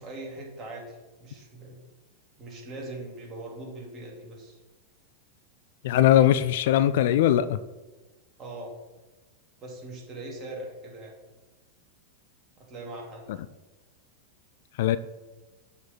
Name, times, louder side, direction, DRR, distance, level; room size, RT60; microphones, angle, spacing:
voice 1, 0.0-1.8 2.4-4.6 8.4-8.7 9.6-11.2 12.6-13.3, right 2 dB, 25° right, -1 dB, 2.5 m, -41 dB
voice 2, 5.8-7.6 14.8-15.0, left 12 dB, 55° left, 14 dB, 0.3 m, -20 dB
7.0 x 6.2 x 4.2 m, 1.1 s
figure-of-eight pair, 90°, 0 cm